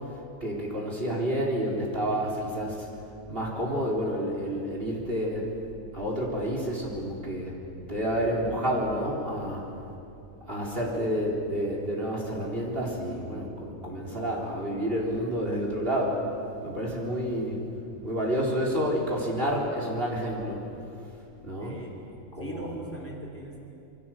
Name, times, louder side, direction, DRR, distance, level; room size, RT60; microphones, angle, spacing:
voice 1, 0.4-2.9 3.3-5.5 5.9-7.5 7.9-9.6 10.5-16.2 16.6-17.6 18.0-20.6 21.4-21.8 22.3-22.7, equal, 40° right, -2 dB, 4.3 m, -29 dB
voice 2, 21.6-22.0 22.4-23.6, right 1 dB, 10° left, 1 dB, 3.4 m, -40 dB
27.5 x 24.0 x 7.8 m, 2.7 s
omnidirectional pair, 1.4 m